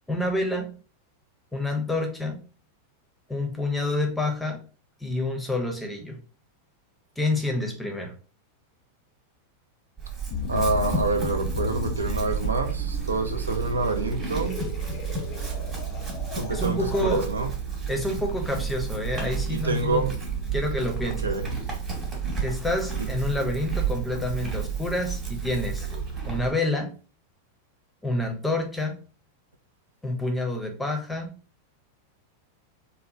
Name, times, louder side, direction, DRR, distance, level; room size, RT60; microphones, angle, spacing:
voice 1, 0.1-0.8 1.5-2.4 3.3-4.6 5.0-6.2 7.2-8.1 16.5-17.3 17.9-20.1 20.5-21.3 22.4-25.9 26.2-26.9 28.0-29.0 30.0-31.4, left 2 dB, 5° left, 0.6 m, -28 dB
Chewing mastication / Livestock farm animals working animals, 10.0-26.5, right 6 dB, 20° right, 1.1 m, -31 dB
sound 1, 10.3-17.2, left 8 dB, 40° left, 0.3 m, -36 dB
voice 2, 10.5-14.6 16.3-17.5 19.5-20.1 21.2-21.5, right 3 dB, 75° right, 0.4 m, -27 dB
2.8 x 2.0 x 2.4 m
figure-of-eight pair, 90°, 0 cm